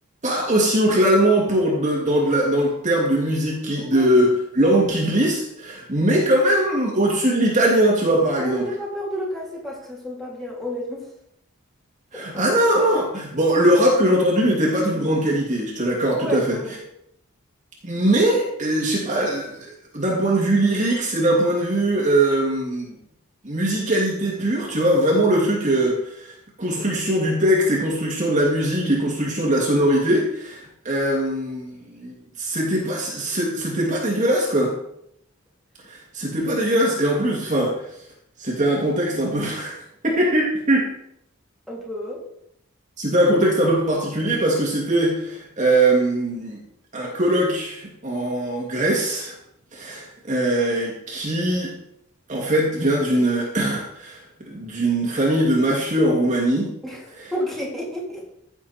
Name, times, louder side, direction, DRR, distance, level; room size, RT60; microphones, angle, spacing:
voice 1, 0.2-8.7 12.1-16.6 17.8-19.6 19.9-22.9 23.4-26.3 26.6-34.7 35.9-37.7 38.4-39.8 40.0-40.9 43.0-46.6 46.9-49.3 49.7-51.7 52.3-54.2 54.5-56.7 57.2-57.3, right 1 dB, 35° right, -2 dB, 2.5 m, -21 dB
voice 2, 3.8-4.1 8.4-11.1 12.1-12.5 16.1-16.8 41.7-42.2 56.8-58.2, equal, ahead, -5 dB, 3.4 m, -31 dB
15.0 x 7.3 x 4.4 m, 0.74 s
head